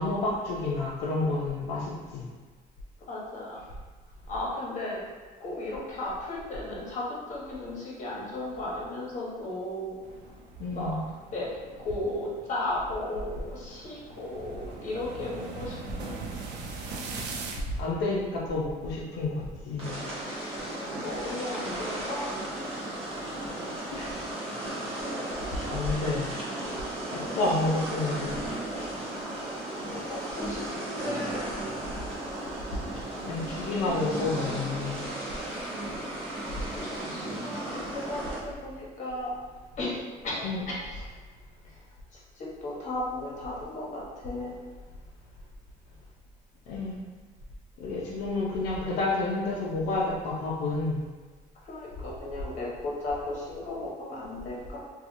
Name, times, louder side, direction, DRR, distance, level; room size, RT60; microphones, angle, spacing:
voice 1, 0.0-2.3 10.6-11.0 17.8-20.0 23.9-24.1 25.3-26.3 27.1-28.4 28.8-28.9 33.2-35.0 40.4-40.6 46.7-47.0 47.8-51.0, left 2 dB, 85° left, -4 dB, 0.5 m, -30 dB
voice 2, 3.1-3.6 4.3-5.0 5.4-10.0 10.7-11.0 11.3-11.5 11.8-16.2 20.6-22.3 27.0-27.5 29.8-31.5 36.4-39.3 39.8-40.0 40.2-41.1 41.6-41.8 42.1-44.5 51.6-54.8, left 2 dB, 45° left, -5 dB, 1.0 m, -35 dB
sound 1, 10.0-17.6, right 3 dB, 85° right, 0.4 m, -41 dB
sound 2, 19.8-38.4, right 1 dB, 35° right, 1.0 m, -35 dB
2.7 x 2.3 x 2.5 m, 1.3 s
cardioid pair, 110°, 17 cm